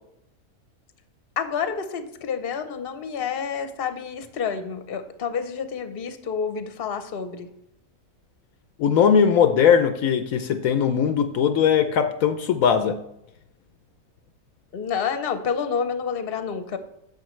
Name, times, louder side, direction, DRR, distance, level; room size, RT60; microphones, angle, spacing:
voice 1, 1.4-7.5 14.7-16.8, left 6 dB, 45° left, 9 dB, 1.0 m, -29 dB
voice 2, 8.8-13.0, left 7 dB, 75° left, 8 dB, 1.0 m, -19 dB
10.5 x 7.2 x 3.1 m, 0.81 s
omnidirectional pair, 1.5 m